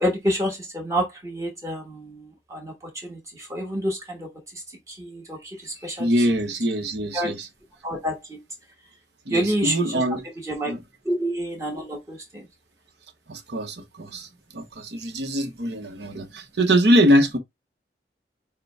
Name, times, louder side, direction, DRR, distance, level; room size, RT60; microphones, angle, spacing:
voice 1, 0.0-2.1 2.5-2.7 3.0-3.2 3.5-4.3 5.0-5.4 5.8-6.0 7.1-7.3 7.8-8.2 9.3-9.7 10.5-10.7 11.0-12.4, equal, 15° right, 1.3 m, -27 dB
voice 2, 6.0-7.5 9.3-10.2 10.6-10.8 13.3-17.4, equal, 70° right, 0.9 m, -23 dB
6.6 x 2.2 x 3.3 m
head